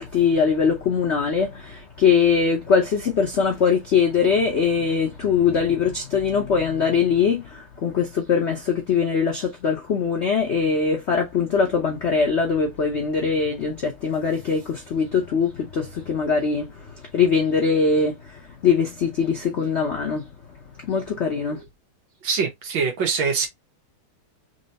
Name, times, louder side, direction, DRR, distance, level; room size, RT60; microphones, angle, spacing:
voice 1, 0.0-20.2 20.8-21.6, left 5 dB, 85° left, 0.6 m, -22 dB
voice 2, 22.2-23.5, right 5 dB, 65° right, 1.9 m, -23 dB
4.3 x 3.1 x 2.8 m
omnidirectional pair, 2.3 m